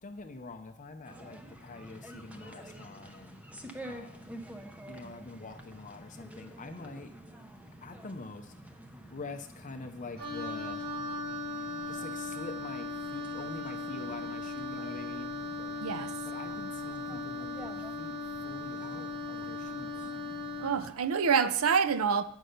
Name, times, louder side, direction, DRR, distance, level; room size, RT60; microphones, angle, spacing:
voice 1, 0.0-3.4 3.9-4.3 4.9-7.1 7.8-8.5 9.1-10.8 11.9-15.4 16.3-20.1, left 3 dB, 35° left, 6 dB, 0.6 m, -45 dB
sound 1, 1.0-20.9, right 1 dB, 5° right, 0.6 m, -49 dB
Wind instrument woodwind instrument, 10.2-20.8, left 2 dB, 45° right, 1.6 m, -38 dB
voice 2, 15.8-16.1 20.6-22.2, right 6 dB, 70° right, 12 dB, 0.5 m, -27 dB
9.0 x 5.5 x 6.4 m, 0.75 s
head